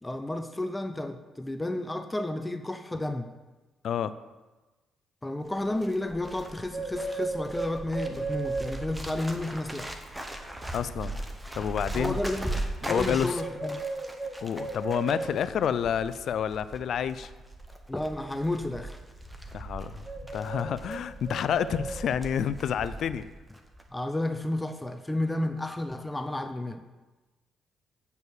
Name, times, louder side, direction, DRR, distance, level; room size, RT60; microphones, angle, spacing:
voice 1, 0.0-3.3 5.2-9.9 11.9-13.8 17.9-19.0 23.9-26.8, left 1 dB, 10° left, 8 dB, 0.5 m, -32 dB
Bird, 5.5-23.3 23.5-23.9, right 2 dB, 10° right, 1.0 m, -37 dB
voice 2, 10.7-11.2 11.5-12.2 12.9-13.3 14.4-17.3 19.5-20.0 20.3-23.3, left 8 dB, 65° left, 14 dB, 0.4 m, -29 dB
8.1 x 4.6 x 6.9 m, 1.2 s
cardioid pair, 90°, 0 cm